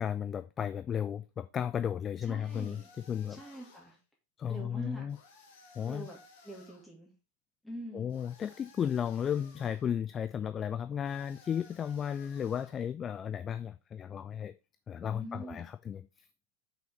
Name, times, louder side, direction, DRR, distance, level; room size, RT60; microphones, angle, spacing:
voice 1, 0.0-2.8 3.1-3.4 4.4-5.2 5.8-6.1 7.9-14.5 14.9-16.1, left 8 dB, 25° left, 0.3 m, -34 dB
voice 2, 2.2-2.9 3.3-4.0 4.5-5.1 5.8-6.2 6.4-7.1 7.6-8.1 15.1-15.6, right 1 dB, ahead, 2.4 m, -44 dB
sound 1, 2.4-4.0 5.1-6.9 8.1-9.9 11.0-12.9, left 3 dB, 55° left, 2.0 m, -58 dB
6.1 x 5.6 x 4.1 m
figure-of-eight pair, 90°, 0 cm